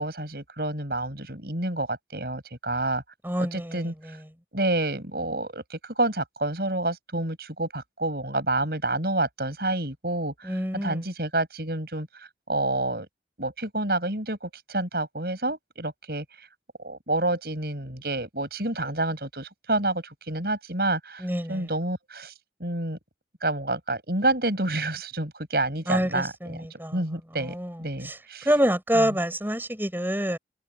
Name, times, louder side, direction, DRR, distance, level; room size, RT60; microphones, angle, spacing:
voice 1, 0.0-3.0 3.4-3.9 4.5-12.1 12.5-13.1 13.4-16.2 16.8-22.3 22.6-23.0 23.4-28.5 28.9-29.2, right 2 dB, 60° right, 7.9 m, -29 dB
voice 2, 3.2-4.1 10.4-11.0 21.2-21.7 25.9-27.0 27.4-27.8 28.0-28.2 28.4-30.4, equal, 10° right, 6.4 m, -27 dB
head